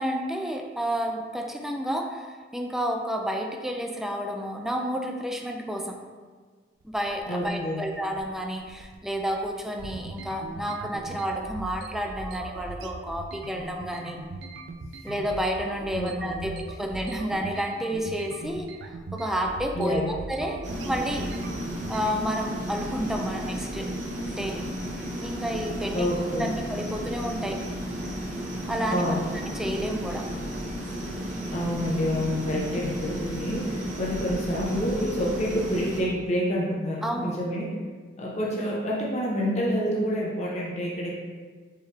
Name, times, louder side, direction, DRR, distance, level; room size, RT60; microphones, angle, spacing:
voice 1, 0.0-6.0 6.8-14.2 15.0-18.7 19.1-21.3 21.9-23.9 24.3-24.7 25.2-27.7 28.7-29.2 29.5-30.3 37.0-37.4, equal, 5° right, 2 dB, 0.3 m, -30 dB
sound 1, 6.8-22.1, right 3 dB, 75° right, 0.4 m, -40 dB
voice 2, 7.3-7.8 16.0-16.5 19.7-20.1 25.9-26.5 28.9-29.2 31.5-37.7 38.2-41.2, equal, 40° left, -4 dB, 0.7 m, -28 dB
sound 2, 20.6-36.0, equal, 45° right, 0.8 m, -33 dB
4.6 x 3.1 x 3.2 m, 1.5 s
head